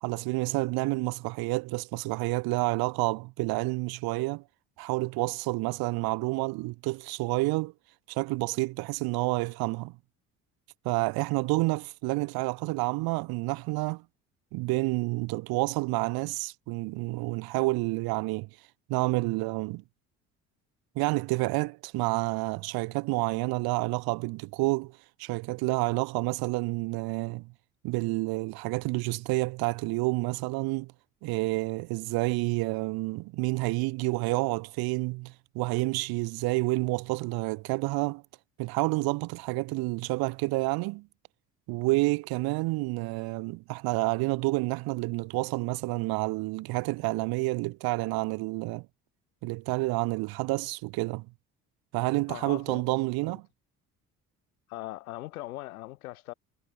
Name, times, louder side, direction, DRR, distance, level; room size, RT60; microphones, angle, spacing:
voice 1, 0.0-4.4 4.8-7.7 8.1-9.9 10.8-14.0 14.5-18.5 18.9-19.8 20.9-27.5 27.8-30.9 31.2-38.2 38.6-41.1 41.7-48.9 49.4-51.3 51.9-53.4, right 23 dB, 55° right, 1.1 m, -29 dB
voice 2, 52.3-52.9 53.2-53.4 54.7-56.3, left 17 dB, 70° left, 7.8 m, -40 dB
figure-of-eight pair, 50°, 44 cm